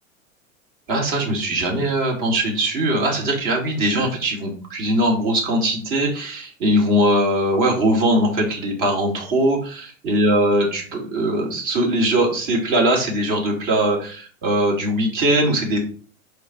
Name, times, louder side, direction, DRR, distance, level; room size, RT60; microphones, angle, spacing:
voice 1, 0.9-15.8, right 1 dB, 50° right, 0 dB, 3.0 m, -21 dB
5.3 x 4.4 x 4.7 m, 0.41 s
figure-of-eight pair, 85°, 41 cm